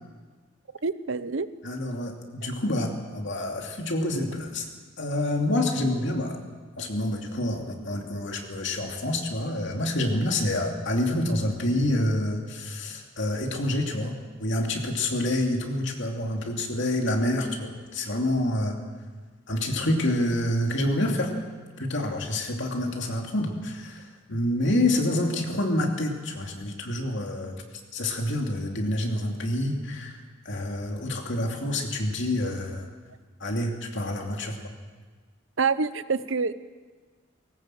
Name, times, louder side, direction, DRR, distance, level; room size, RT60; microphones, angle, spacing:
voice 1, 0.8-1.5 2.4-2.5 35.6-36.5, right 4 dB, 65° right, 14 dB, 0.8 m, -26 dB
voice 2, 1.6-4.7 5.0-6.4 6.8-14.1 14.4-18.8 19.5-21.3 21.8-27.6 27.9-30.2 30.4-32.9 33.4-34.6, left 1 dB, 60° left, 2 dB, 2.8 m, -27 dB
20.0 x 18.5 x 7.7 m, 1.4 s
head